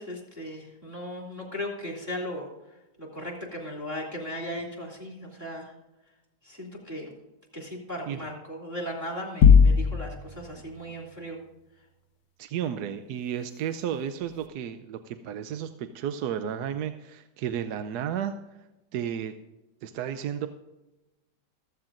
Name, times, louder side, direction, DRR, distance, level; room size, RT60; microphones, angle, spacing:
voice 1, 0.0-2.5 3.0-5.7 6.4-7.1 7.5-11.4, equal, 10° right, -5 dB, 3.1 m, -37 dB
sound 1, 9.4-10.4, left 6 dB, 75° left, 1.2 m, -16 dB
voice 2, 12.4-18.3 18.9-19.3 19.8-20.5, right 9 dB, 80° right, 9 dB, 1.2 m, -32 dB
14.5 x 14.0 x 2.5 m, 1.0 s
omnidirectional pair, 1.7 m